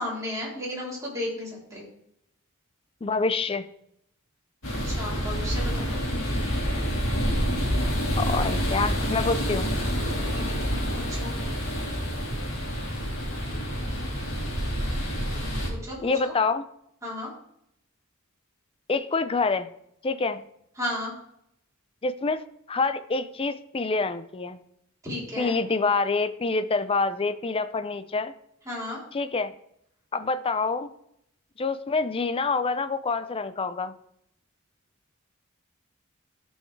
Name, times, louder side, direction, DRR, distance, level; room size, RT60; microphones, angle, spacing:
voice 1, 0.0-1.9 4.8-6.4 10.3-11.3 15.7-16.3 17.0-17.3 20.8-21.1 25.0-25.5 28.7-29.0, left 1 dB, 15° right, -5 dB, 3.4 m, -34 dB
voice 2, 3.0-3.7 8.2-9.7 16.0-16.6 18.9-19.7 20.0-20.4 22.0-22.4 22.7-24.6 25.4-28.3 29.1-29.5 30.1-30.9 31.6-33.9, left 4 dB, 25° left, 12 dB, 0.5 m, -26 dB
sound 1, 4.6-15.7, equal, 70° left, 2.8 m, -28 dB
13.5 x 5.5 x 3.3 m, 0.75 s
head